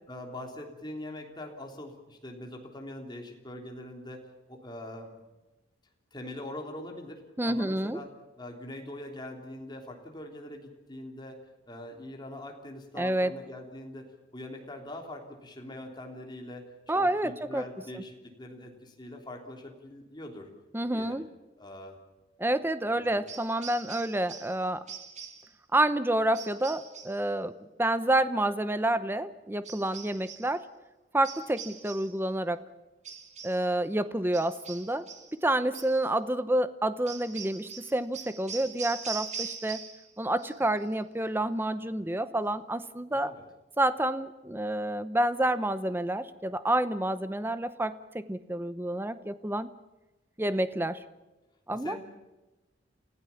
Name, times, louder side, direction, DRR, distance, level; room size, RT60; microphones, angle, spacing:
voice 1, 0.1-5.1 6.1-8.1 8.4-11.4 11.7-20.5 20.9-21.2 21.6-22.0 23.2-23.3 43.1-43.4 51.7-52.0, left 1 dB, 25° left, 2 dB, 3.3 m, -43 dB
voice 2, 7.4-8.0 13.0-13.3 16.9-17.6 17.9-18.0 20.7-21.3 22.4-24.8 25.7-30.7 31.1-32.6 33.4-35.0 35.3-39.8 40.2-43.3 43.8-49.7 50.4-51.0 51.7-52.0, right 1 dB, 10° right, 13 dB, 0.8 m, -29 dB
sound 1, 23.3-24.6 24.9-25.5 26.3-27.2 29.6-30.5 31.2-32.2 33.0-33.7 34.3-35.3 35.7-36.0 37.1-40.1 40.4-40.9, right 6 dB, 40° right, 2.3 m, -42 dB
28.5 x 16.0 x 7.2 m, 1.1 s
head